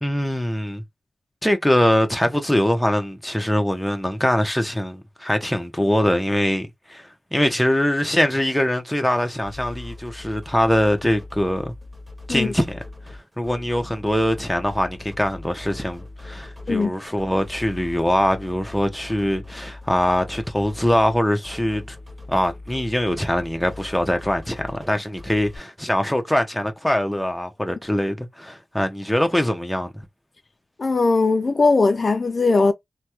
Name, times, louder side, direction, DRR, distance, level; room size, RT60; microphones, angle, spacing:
voice 1, 0.0-0.8 1.4-11.7 12.3-22.0 22.3-30.0, equal, 5° left, 0.9 m, -23 dB
sound 1, 9.4-25.6, left 2 dB, 25° right, 1.5 m, -40 dB
voice 2, 30.8-32.7, left 3 dB, 60° left, 0.4 m, -19 dB
3.2 x 2.2 x 2.9 m
cardioid pair, 60°, 0 cm